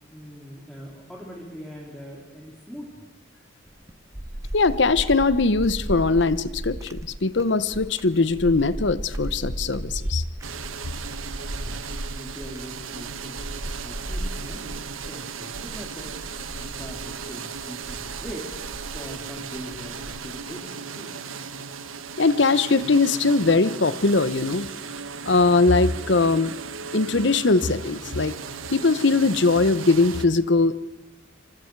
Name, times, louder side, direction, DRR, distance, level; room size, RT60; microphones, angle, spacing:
voice 1, 0.1-3.1 11.5-11.8 12.1-13.5 13.8-16.2 16.5-18.5 18.9-21.2, equal, 5° left, -3 dB, 3.0 m, -41 dB
sound 1, 3.7-20.5, right 1 dB, 15° right, 0.7 m, -36 dB
voice 2, 4.5-10.2 22.2-24.7 25.3-26.5 26.9-28.3 28.7-30.8, left 3 dB, 60° left, 15 dB, 0.8 m, -21 dB
sound 2, 10.4-30.3, right 6 dB, 85° right, 1.2 m, -37 dB
27.5 x 25.0 x 4.7 m, 1.0 s
head